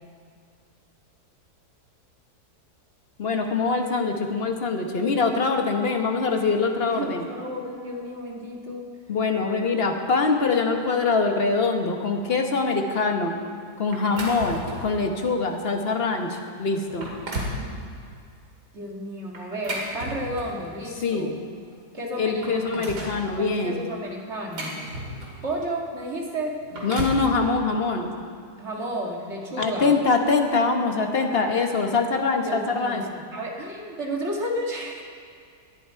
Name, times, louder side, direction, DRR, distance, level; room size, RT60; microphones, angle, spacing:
voice 1, 3.2-7.3 9.1-13.3 13.8-17.1 21.0-21.3 22.2-23.8 26.8-28.1 29.6-33.0, left 4 dB, 40° left, 3 dB, 1.3 m, -24 dB
voice 2, 6.9-8.9 18.7-21.3 21.9-22.9 23.4-24.9 25.4-26.6 28.6-30.0 32.4-35.0, equal, 40° right, -1 dB, 2.0 m, -32 dB
sound 1, 13.9-15.0 15.5-15.7 16.3-16.4 16.8-17.6 19.3-20.7 21.7-21.8 22.1-23.2 24.1-25.5 26.5-27.3, right 1 dB, 75° right, 2.9 m, -33 dB
19.5 x 11.0 x 4.6 m, 2.3 s
omnidirectional pair, 1.8 m